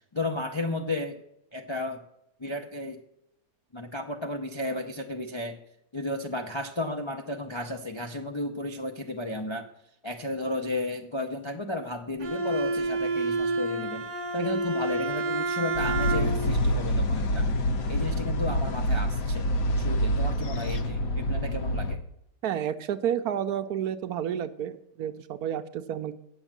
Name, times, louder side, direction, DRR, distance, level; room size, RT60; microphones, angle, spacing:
voice 1, 0.1-1.2 1.5-2.0 2.4-3.0 3.7-5.6 5.9-9.7 10.0-14.1 14.3-17.5 17.9-19.5 19.8-22.0, left 2 dB, 40° left, 2 dB, 0.4 m, -33 dB
Bowed string instrument, 12.2-16.6, right 2 dB, 50° right, 1.2 m, -29 dB
sound 1, 15.7-22.0, equal, 60° left, 1.3 m, -27 dB
voice 2, 22.4-26.1, right 9 dB, 70° right, 10 dB, 1.1 m, -30 dB
9.1 x 7.0 x 7.4 m, 0.80 s
omnidirectional pair, 1.8 m